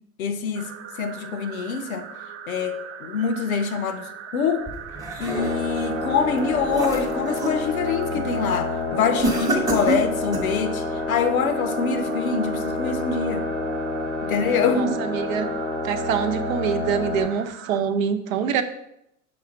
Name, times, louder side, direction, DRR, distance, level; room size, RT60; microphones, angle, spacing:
voice 1, 0.2-0.7 1.0-2.1 2.5-4.7 5.2-13.5 14.2-15.0, left 5 dB, 75° left, 0.9 m, -25 dB
sound 1, 0.5-17.8, right 7 dB, 30° right, 0.6 m, -40 dB
sound 2, 4.7-5.8 6.3-7.6 8.0-8.4 9.2-10.6, right 2 dB, 10° right, 0.9 m, -28 dB
sound 3, 5.4-17.3, left 2 dB, 15° left, 0.8 m, -28 dB
voice 2, 14.7-15.5 15.8-18.6, right 7 dB, 65° right, 0.8 m, -25 dB
6.3 x 3.4 x 5.0 m
hypercardioid pair, 105°, 43 cm